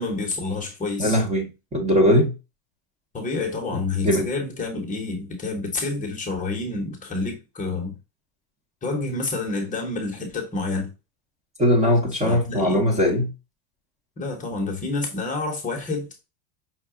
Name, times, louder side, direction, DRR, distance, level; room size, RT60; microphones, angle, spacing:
voice 1, 0.0-1.2 3.1-8.0 8.8-10.9 12.2-12.8 14.2-16.1, left 3 dB, 15° left, 0.9 m, -28 dB
voice 2, 1.0-2.3 3.7-4.3 11.6-13.3, equal, 15° right, 0.8 m, -20 dB
5.7 x 2.3 x 3.6 m
supercardioid pair, 150°, 47 cm